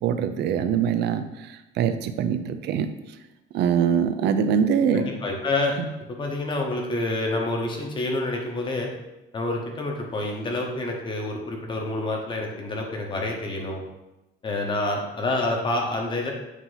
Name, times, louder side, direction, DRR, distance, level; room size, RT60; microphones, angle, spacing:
voice 1, 0.0-2.9 3.5-5.1 5.8-5.9, right 7 dB, 55° right, 10 dB, 0.5 m, -23 dB
voice 2, 4.9-5.8 6.1-8.9 9.3-13.8 14.4-16.3, left 2 dB, 25° left, 1 dB, 1.0 m, -28 dB
8.2 x 2.9 x 5.6 m, 0.99 s
cardioid pair, 175°, 21 cm